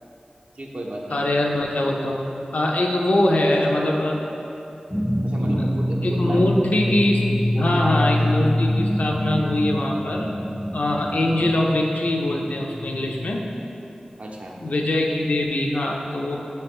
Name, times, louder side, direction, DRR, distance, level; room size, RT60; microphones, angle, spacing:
voice 1, 0.5-1.2 5.2-6.4 7.5-8.3 14.2-14.6 16.2-16.4, right 1 dB, 60° right, -1 dB, 0.5 m, -33 dB
voice 2, 1.1-2.2 2.5-4.2 5.4-5.7 6.0-7.2 7.6-10.3 10.7-13.5 14.6-16.4, left 1 dB, 70° left, 0 dB, 0.4 m, -22 dB
sound 1, 4.9-13.3, left 1 dB, 5° left, 0.5 m, -25 dB
4.9 x 2.8 x 3.5 m, 2.9 s
wide cardioid pair, 70°, 3 cm